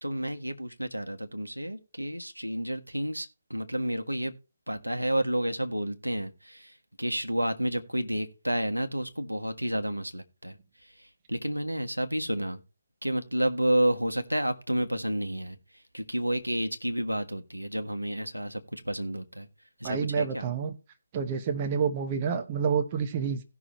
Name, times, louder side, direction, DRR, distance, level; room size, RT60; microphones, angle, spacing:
voice 1, 0.0-4.3 4.7-10.6 11.3-12.6 13.0-15.6 15.9-19.5 19.8-20.5, right 1 dB, 90° right, 1.4 m, -30 dB
voice 2, 19.8-20.8 21.1-23.4, right 6 dB, 25° right, 0.9 m, -28 dB
17.0 x 6.1 x 3.1 m
figure-of-eight pair, 145°, 0 cm